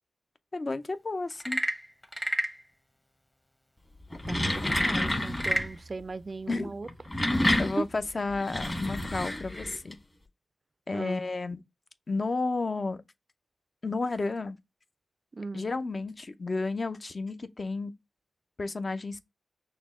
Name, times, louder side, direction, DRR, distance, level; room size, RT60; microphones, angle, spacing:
voice 1, 0.5-1.6 6.5-6.7 7.6-10.0 10.9-11.6 12.1-13.0 13.8-14.6 15.5-17.9 18.6-19.2, left 3 dB, 50° left, 0.5 m, -32 dB
Frog / Percussion / Wood, 1.3-2.6 4.6-5.7, equal, 10° left, 0.7 m, -30 dB
sound 1, 4.0-5.7 6.8-9.9, left 1 dB, 30° left, 1.3 m, -29 dB
voice 2, 4.7-6.9 7.8-7.9 10.9-11.2 15.3-15.7, right 3 dB, 50° right, 0.3 m, -37 dB
5.9 x 2.1 x 3.6 m
cardioid pair, 40°, 0 cm